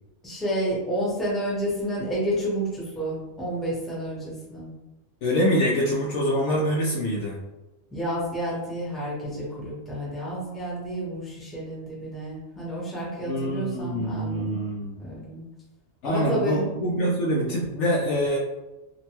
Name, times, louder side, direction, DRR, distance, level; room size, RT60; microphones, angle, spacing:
voice 1, 0.2-4.7 7.9-14.6 15.0-15.4 16.0-16.6, right 1 dB, ahead, -7 dB, 0.8 m, -30 dB
voice 2, 5.2-7.4 13.2-15.0 16.0-18.4, equal, 70° left, -3 dB, 0.8 m, -25 dB
2.9 x 2.1 x 2.9 m, 1.0 s
omnidirectional pair, 1.4 m